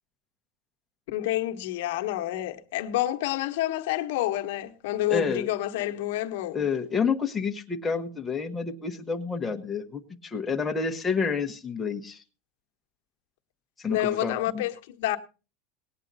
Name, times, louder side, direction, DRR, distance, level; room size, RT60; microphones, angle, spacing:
voice 1, 1.1-6.6 13.9-15.2, left 14 dB, 65° left, 1.1 m, -28 dB
voice 2, 5.1-5.5 6.5-12.2 13.8-14.6, left 5 dB, 10° left, 1.1 m, -29 dB
19.0 x 8.8 x 4.0 m
supercardioid pair, 170°, 0 cm